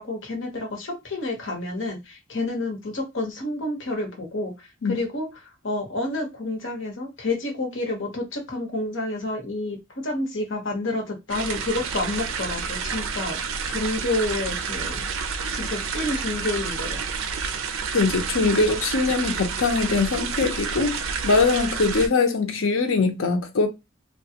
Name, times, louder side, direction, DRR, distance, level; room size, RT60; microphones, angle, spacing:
voice 1, 0.0-13.4 13.6-15.1 15.5-17.0 21.9-22.1, left 2 dB, 70° left, 1.0 m, -29 dB
sound 1, 11.3-22.1, right 5 dB, 85° right, 0.5 m, -29 dB
voice 2, 17.9-23.7, left 4 dB, 85° left, 0.7 m, -22 dB
3.1 x 2.3 x 2.8 m
head